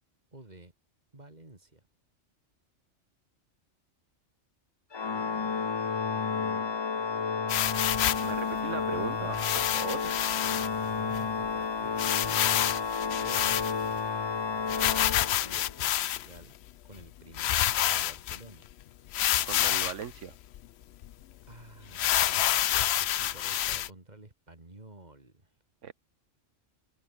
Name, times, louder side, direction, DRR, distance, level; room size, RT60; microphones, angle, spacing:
voice 1, 0.3-0.7 1.1-1.8 10.3-14.0 14.6-16.5 16.8-18.7 21.5-25.6, right 2 dB, 35° right, 3.4 m, -51 dB
Organ, 4.9-15.8, left 5 dB, 35° left, 0.4 m, -31 dB
voice 2, 6.1-6.7 8.2-10.1 19.4-20.4 25.8-25.9, right 8 dB, 85° right, 1.4 m, -39 dB
sound 1, 7.5-8.3 9.3-10.7 11.1-11.2 11.4-11.5 12.0-14.0 14.7-16.4 17.0-17.1 17.3-18.4 19.1-20.0 20.5-20.6 21.0-21.1 21.9-23.9, left 12 dB, 65° left, 0.8 m, -28 dB
omnidirectional pair, 1.2 m